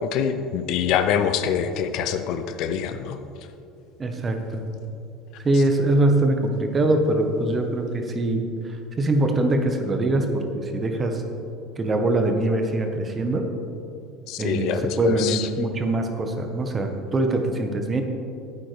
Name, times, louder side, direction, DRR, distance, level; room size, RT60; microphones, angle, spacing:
voice 1, 0.0-3.2 14.3-15.5, left 8 dB, 65° left, 9 dB, 0.6 m, -25 dB
voice 2, 4.0-4.6 5.4-11.2 11.8-13.4 14.4-18.0, right 2 dB, 30° right, 4 dB, 1.3 m, -23 dB
12.0 x 8.8 x 3.5 m, 2.7 s
hypercardioid pair, 85°, 0 cm